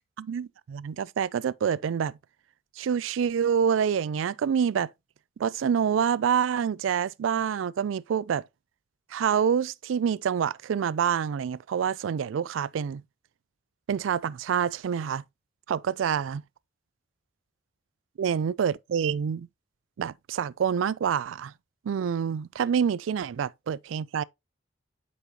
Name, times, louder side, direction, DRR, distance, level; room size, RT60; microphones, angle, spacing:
voice 1, 0.2-2.2 2.8-4.9 5.4-8.4 9.1-13.0 13.9-15.2 15.7-16.4 18.2-19.5 20.0-21.5 21.8-24.2, right 7 dB, 85° right, 0.3 m, -27 dB
8.2 x 5.4 x 2.8 m
head